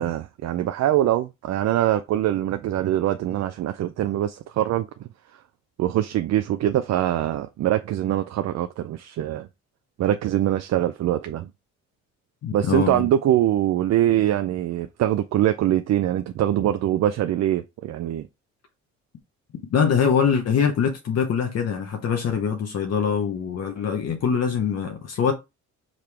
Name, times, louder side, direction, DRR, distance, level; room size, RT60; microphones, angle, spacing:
voice 1, 0.0-5.1 5.8-9.5 10.0-11.5 12.5-18.3, right 12 dB, 60° right, 0.4 m, -23 dB
voice 2, 12.4-13.1 19.7-25.3, left 7 dB, 55° left, 0.9 m, -23 dB
5.1 x 2.9 x 3.3 m
cardioid pair, 90°, 30 cm